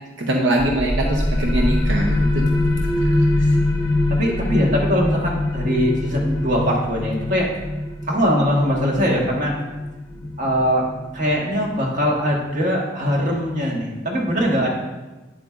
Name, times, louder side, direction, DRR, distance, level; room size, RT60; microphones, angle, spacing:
voice 1, 0.2-2.5 3.4-3.5, right 1 dB, 80° right, 1 dB, 0.7 m, -22 dB
sound 1, 0.6-12.0, left 1 dB, 20° left, 0.9 m, -23 dB
voice 2, 4.1-7.5 8.1-9.5 10.4-10.9 11.1-14.7, equal, 45° right, -1 dB, 1.4 m, -21 dB
9.6 x 7.6 x 2.5 m, 1.1 s
head